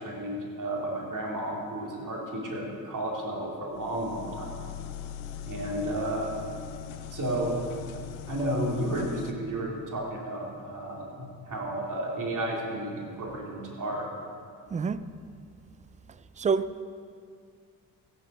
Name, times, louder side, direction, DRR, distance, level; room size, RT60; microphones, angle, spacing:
voice 1, 0.0-4.6 5.5-6.3 7.1-7.6 8.3-14.1, right 1 dB, 40° right, -2 dB, 2.7 m, -32 dB
sound 1, 3.7-9.3, left 9 dB, 70° left, 0.7 m, -41 dB
voice 2, 14.7-15.0 16.4-16.8, right 5 dB, 15° right, 14 dB, 0.3 m, -27 dB
15.5 x 5.7 x 5.4 m, 2.2 s
hypercardioid pair, 40°, 46 cm